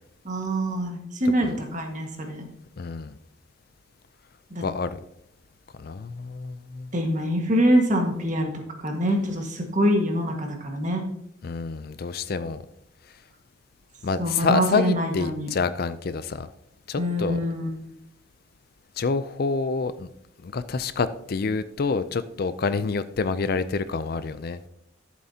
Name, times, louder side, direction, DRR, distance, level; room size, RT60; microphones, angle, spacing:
voice 1, 0.2-2.5 4.5-4.6 6.9-8.5 8.8-11.0 14.2-15.5 17.0-17.7, equal, 40° right, 3 dB, 1.6 m, -24 dB
voice 2, 2.8-3.1 4.6-5.0 5.8-6.9 11.4-12.6 14.0-16.5 16.9-17.4 19.0-20.1 20.4-24.6, left 4 dB, 50° left, 13 dB, 0.4 m, -27 dB
12.5 x 7.5 x 2.8 m, 0.77 s
head